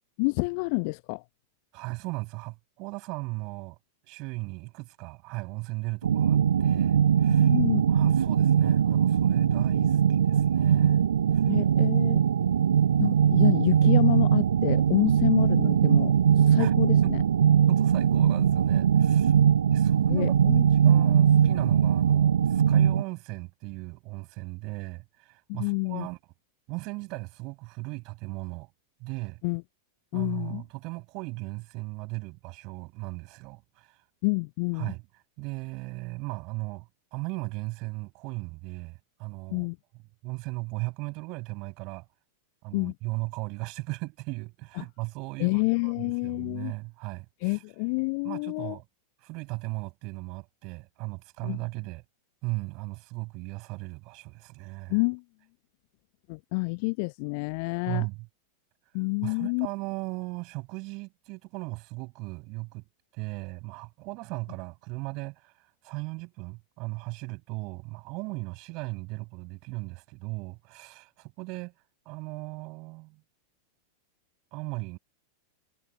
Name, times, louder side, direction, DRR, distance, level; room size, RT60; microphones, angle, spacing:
voice 1, 0.2-1.2 7.4-8.1 11.5-12.2 13.0-17.2 20.1-20.6 21.0-21.2 25.5-26.1 29.4-29.6 30.1-30.6 34.2-34.9 39.5-39.8 42.7-42.9 44.8-44.9 45.4-46.7 47.4-48.8 51.4-51.6 54.9-55.2 56.3-58.1 58.9-59.7, left 33 dB, 45° left, 0.8 m, -28 dB
voice 2, 1.7-3.8 4.0-7.5 7.9-11.0 11.3-11.5 16.6-16.7 17.0-17.2 17.7-19.3 19.7-26.2 26.7-28.7 29.0-29.4 30.1-34.0 34.7-35.0 35.4-39.7 40.2-42.1 42.6-47.6 48.2-48.8 49.2-52.0 52.4-55.0 57.9-58.3 59.2-62.8 63.1-65.5 65.8-71.7 72.1-73.2 74.5-75.0, right 26 dB, 40° right, 5.8 m, -37 dB
sound 1, 6.0-23.0, right 8 dB, 65° right, 0.4 m, -21 dB
figure-of-eight pair, 90°, 0 cm